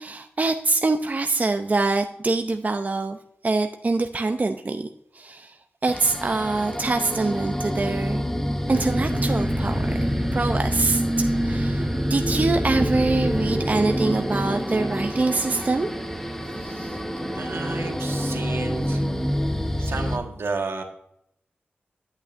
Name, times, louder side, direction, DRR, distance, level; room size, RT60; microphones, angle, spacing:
voice 1, 0.0-3.2 3.4-4.9 5.1-5.5 5.8-8.3 8.7-9.8 10.3-15.9, right 3 dB, 40° right, 6 dB, 0.6 m, -24 dB
sound 1, 5.9-20.2, equal, 10° left, 0.8 m, -28 dB
sound 2, 8.7-17.9, right 1 dB, 20° right, 1.0 m, -30 dB
voice 2, 16.5-17.0 17.3-19.0 19.8-20.8, right 3 dB, 80° right, 3 dB, 1.4 m, -32 dB
9.0 x 8.2 x 2.6 m, 0.73 s
cardioid pair, 55°, 4 cm